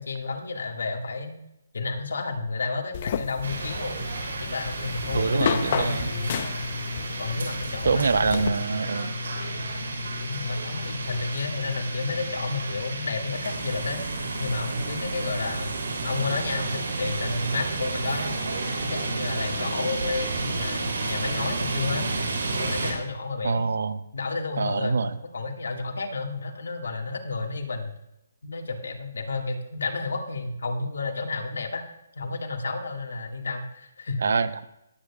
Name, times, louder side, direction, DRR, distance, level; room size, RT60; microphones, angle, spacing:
voice 1, 0.0-1.4 1.7-4.0 4.4-6.3 7.2-8.7 10.2-14.0 14.4-18.3 18.8-22.1 22.5-23.7 24.1-27.9 28.4-31.8 32.2-34.3, left 3 dB, 80° left, 3 dB, 1.8 m, -31 dB
sound 1, 2.9-8.5, left 7 dB, 40° left, 0.7 m, -32 dB
sound 2, 3.4-22.9, right 2 dB, 90° right, 3.2 m, -31 dB
voice 2, 5.1-6.1 7.9-9.1 23.4-24.0 24.6-25.1 34.2-34.7, right 4 dB, 70° right, 15 dB, 0.6 m, -25 dB
19.5 x 8.7 x 2.4 m, 0.88 s
hypercardioid pair, 165°, 0 cm